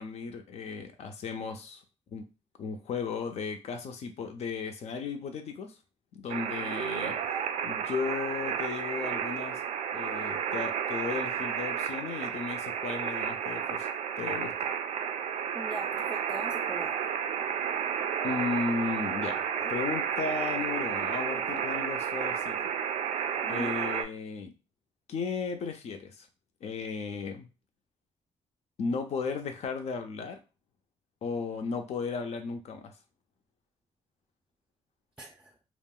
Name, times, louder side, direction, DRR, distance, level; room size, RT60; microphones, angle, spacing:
voice 1, 0.0-1.8 2.1-2.3 2.6-5.7 6.1-7.1 7.6-9.6 9.9-13.9 14.2-14.5 18.2-22.7 23.5-24.5 25.1-26.3 26.6-27.5 28.8-30.4 31.2-32.9, left 5 dB, 70° left, 6 dB, 0.6 m, -35 dB
sound 1, 6.3-24.0, right 8 dB, 80° right, 0.4 m, -32 dB
voice 2, 15.5-16.9 19.6-19.7 23.4-23.7 35.2-35.5, right 2 dB, 10° right, 2 dB, 0.4 m, -40 dB
2.4 x 2.0 x 3.7 m, 0.31 s
cardioid pair, 125°, 12 cm